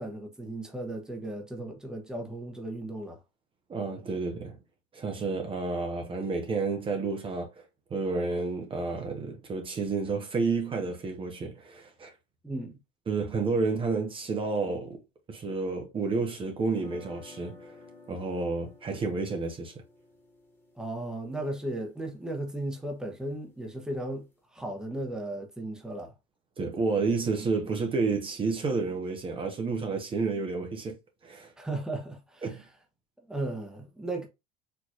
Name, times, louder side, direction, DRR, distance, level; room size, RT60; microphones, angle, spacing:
voice 1, 0.0-3.2 12.4-12.8 20.8-24.3 24.5-26.1 31.6-32.6 33.3-34.3, right 1 dB, 5° right, 1.1 m, -35 dB
voice 2, 3.7-4.6 4.9-7.6 7.9-12.1 13.1-15.0 15.3-17.7 18.1-19.7 26.6-31.0 31.2-31.5 32.4-32.6, right 4 dB, 30° right, 1.0 m, -30 dB
sound 1, 16.7-22.7, left 3 dB, 15° left, 1.6 m, -53 dB
4.5 x 3.0 x 2.5 m
supercardioid pair, 95°, 17 cm